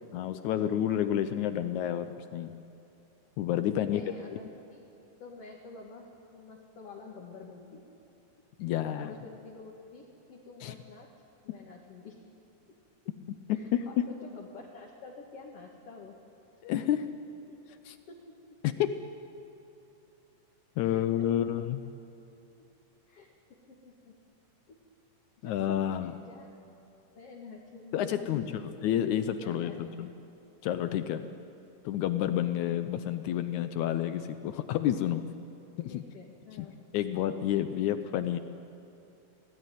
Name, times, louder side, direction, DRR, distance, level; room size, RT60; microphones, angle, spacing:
voice 1, 0.1-2.5 3.4-4.0 8.6-9.1 10.6-10.7 13.5-14.0 16.6-17.1 17.9-18.0 18.6-18.9 20.8-21.8 25.4-26.1 27.9-30.1 30.6-31.2 31.8-35.3 35.8-36.0 36.6-36.7 36.9-38.4, left 11 dB, 85° left, 10 dB, 1.7 m, -29 dB
voice 2, 3.7-4.9 5.2-7.8 8.7-11.1 11.4-12.2 13.5-16.2 17.5-17.8 18.1-18.3 20.8-21.5 23.1-23.3 23.7-24.1 24.7-24.8 25.4-26.6 27.1-28.6 29.4-29.8 31.0-31.4 35.9-36.8, left 4 dB, 45° left, -1 dB, 2.4 m, -49 dB
25.5 x 17.5 x 9.3 m, 2.8 s
omnidirectional pair, 4.3 m